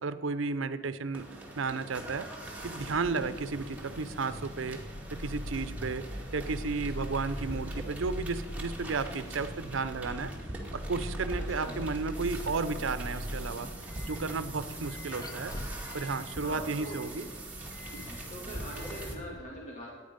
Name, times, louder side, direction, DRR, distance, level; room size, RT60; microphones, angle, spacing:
voice 1, 0.0-1.3 1.6-2.3 2.6-4.8 5.1-6.0 6.3-10.3 10.7-13.7 14.1-15.5 15.9-17.3, right 4 dB, 80° right, 13 dB, 0.6 m, -33 dB
sound 1, 1.1-19.2, right 1 dB, 10° right, 2.1 m, -43 dB
Vehicle, 2.4-19.4, equal, 20° left, 0.6 m, -42 dB
voice 2, 16.4-17.0 18.3-19.9, equal, 40° left, -3 dB, 2.0 m, -42 dB
14.5 x 9.6 x 5.2 m, 1.5 s
head